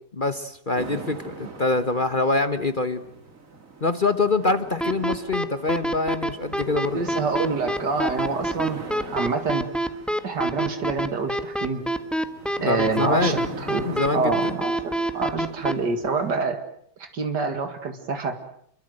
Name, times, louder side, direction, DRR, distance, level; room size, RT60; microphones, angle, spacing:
voice 1, 0.2-3.0 3.8-7.0 12.6-13.4 13.8-14.5, left 3 dB, 30° left, 10 dB, 1.3 m, -25 dB
sound 1, 0.7-16.4, right 3 dB, 50° right, 2.9 m, -42 dB
sound 2, 4.8-15.7, right 1 dB, ahead, 1.5 m, -25 dB
voice 2, 6.9-8.8 9.1-9.7 10.2-11.8 12.6-13.9 14.1-16.6 17.0-18.4, right 4 dB, 80° right, 7 dB, 2.7 m, -27 dB
28.5 x 24.0 x 7.9 m, 0.67 s
omnidirectional pair, 1.8 m